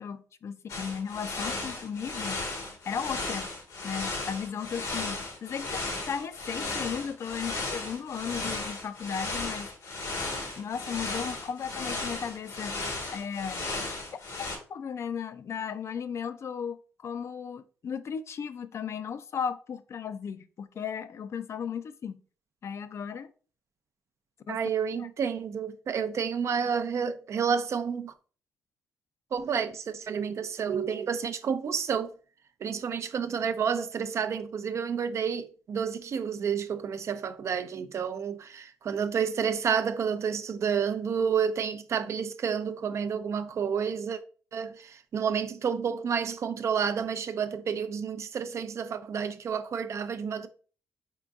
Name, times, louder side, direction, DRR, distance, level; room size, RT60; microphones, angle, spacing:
voice 1, 0.0-2.4 2.9-3.5 3.8-9.7 10.6-13.7 14.7-22.2 22.6-23.3 24.5-24.6 24.9-25.1, left 7 dB, 55° left, 0.4 m, -35 dB
sound 1, 0.7-14.6, left 2 dB, 80° left, 1.1 m, -35 dB
voice 2, 24.5-28.1 29.3-32.1 32.6-44.2 44.5-50.5, right 7 dB, 55° right, 0.4 m, -30 dB
3.8 x 3.7 x 2.3 m
supercardioid pair, 65°, 6 cm